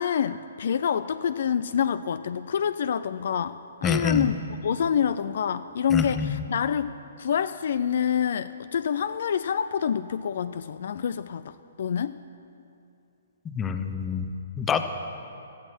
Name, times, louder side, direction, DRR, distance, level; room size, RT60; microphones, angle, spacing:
voice 1, 0.0-4.3 4.6-12.2, left 8 dB, 65° left, 13 dB, 0.4 m, -27 dB
voice 2, 3.8-4.3 5.9-6.4 13.4-14.3 14.6-14.8, left 6 dB, 15° left, 8 dB, 0.8 m, -26 dB
18.0 x 13.5 x 4.5 m, 2.6 s
hypercardioid pair, 135°, 0 cm